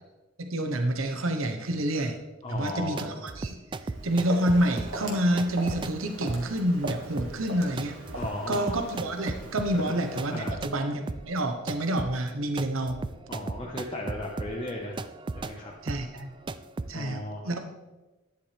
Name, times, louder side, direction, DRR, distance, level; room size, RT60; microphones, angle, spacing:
voice 1, 0.4-2.2 2.5-3.5 4.0-8.0 8.5-13.0 15.8-16.3 16.9-17.6, right 1 dB, 85° right, 5 dB, 1.1 m, -28 dB
voice 2, 2.4-3.2 8.1-8.8 9.7-10.0 10.3-10.6 13.3-15.0 15.3-15.7 16.9-17.6, left 1 dB, 25° left, -3 dB, 1.1 m, -36 dB
sound 1, 2.5-10.8 11.1-16.9, right 3 dB, 25° right, 0.3 m, -37 dB
Walk footsteps, 3.9-10.5, right 2 dB, 70° right, 1.9 m, -40 dB
11.0 x 10.5 x 3.4 m, 1.1 s
head